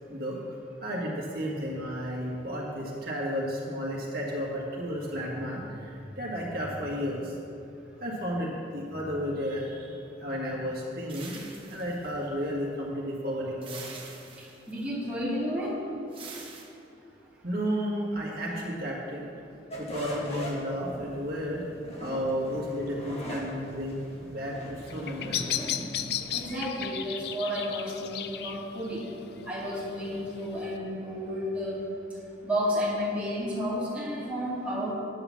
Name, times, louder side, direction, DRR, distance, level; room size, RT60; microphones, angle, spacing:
voice 1, 0.8-7.3 8.0-11.4 11.7-13.8 17.4-19.2 19.8-21.6 22.0-25.7, equal, 55° right, -4 dB, 1.8 m, -33 dB
sound 1, 11.1-12.5 13.6-14.8 16.1-16.6, right 4 dB, 30° right, 1.4 m, -45 dB
voice 2, 14.7-15.7 26.3-29.0 29.5-31.8 32.4-34.9, equal, 5° right, -8 dB, 2.5 m, -31 dB
sound 2, 19.7-26.6, equal, 35° left, 1.6 m, -40 dB
Bird vocalization bird call bird song, 24.8-30.8, left 10 dB, 60° left, 0.5 m, -36 dB
10.0 x 6.9 x 7.2 m, 2.6 s
head